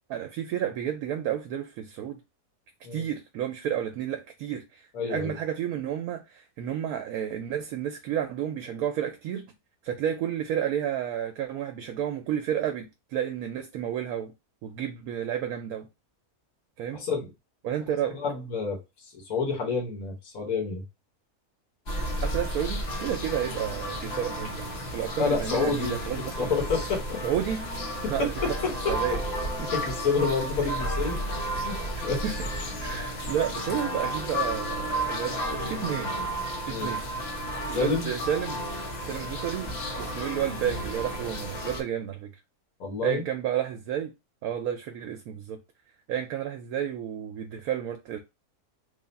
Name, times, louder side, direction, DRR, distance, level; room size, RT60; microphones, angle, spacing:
voice 1, 0.1-2.2 2.9-9.5 9.8-14.3 14.6-15.9 16.8-17.0 17.6-18.2 22.2-26.5 27.2-27.7 28.1-28.6 28.9-29.2 29.6-29.7 32.0-32.4 32.8-36.2 36.7-37.0 37.7-38.6 39.1-42.3 43.0-44.1 44.4-45.6 46.1-48.2, right 10 dB, 75° right, 1.0 m, -31 dB
voice 2, 4.9-5.3 16.9-17.3 18.1-20.8 25.2-27.2 28.0-28.1 28.8-28.9 29.7-31.2 31.6-31.8 32.0-32.4 36.7-36.9 37.7-38.1 42.8-43.2, left 4 dB, 65° left, 1.5 m, -29 dB
sound 1, 21.9-41.8, equal, 50° left, 1.0 m, -32 dB
3.4 x 2.4 x 3.9 m
omnidirectional pair, 1.6 m